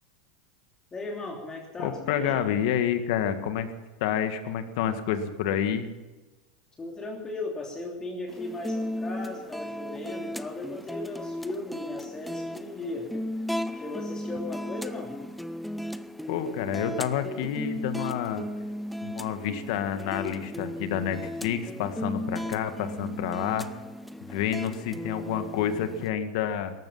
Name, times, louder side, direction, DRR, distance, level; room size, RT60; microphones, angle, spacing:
voice 1, 0.9-2.4 6.8-13.3 13.7-15.2, left 2 dB, 20° left, 0 dB, 3.0 m, -37 dB
voice 2, 1.8-3.7 4.0-5.9 16.3-18.4 19.0-23.7 24.3-26.7, left 9 dB, 65° left, 9 dB, 1.9 m, -29 dB
sound 1, 8.3-26.1, left 1 dB, ahead, 0.7 m, -36 dB
18.0 x 14.0 x 5.6 m, 1.2 s
hypercardioid pair, 115°, 3 cm